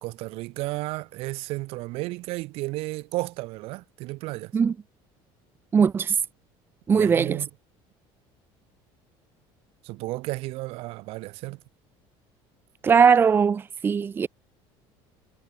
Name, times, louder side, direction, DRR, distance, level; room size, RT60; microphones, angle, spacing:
voice 1, 0.0-4.5 6.9-7.5 9.8-11.6, right 21 dB, 60° right, 2.3 m, -33 dB
voice 2, 5.7-6.2 6.9-7.4 12.8-14.3, right 6 dB, 20° right, 1.0 m, -20 dB
cardioid pair, 165°, 11 cm